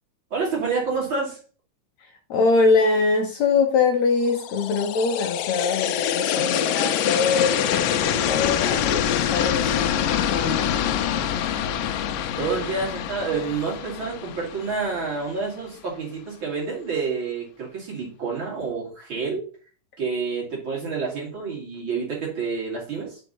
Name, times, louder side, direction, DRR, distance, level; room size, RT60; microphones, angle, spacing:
voice 1, 0.3-1.4 6.4-6.5 12.4-19.4 20.0-23.2, right 4 dB, 40° right, -4 dB, 3.1 m, -28 dB
voice 2, 2.3-10.7, left 4 dB, 70° left, 3 dB, 1.9 m, -23 dB
sound 1, 4.3-15.3, left 9 dB, 85° left, 2.3 m, -25 dB
5.9 x 4.7 x 5.3 m, 0.39 s
omnidirectional pair, 3.8 m